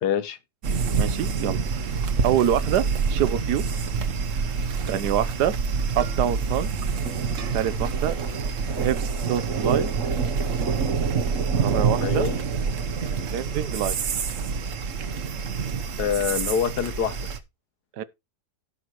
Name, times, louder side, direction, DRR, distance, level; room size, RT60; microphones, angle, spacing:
voice 1, 0.0-0.4 12.0-12.4 16.0-17.3, left 8 dB, 75° left, 1.5 m, -25 dB
sound 1, 0.6-17.4, right 5 dB, 55° right, 1.3 m, -26 dB
voice 2, 0.9-1.9 2.2-3.6 4.4-4.5 4.9-5.5 6.0-6.7 7.5-8.2 8.8-9.9 11.6-12.3 13.3-13.9 18.0-18.1, right 10 dB, 85° right, 1.4 m, -26 dB
16.5 x 5.9 x 3.0 m
omnidirectional pair, 1.7 m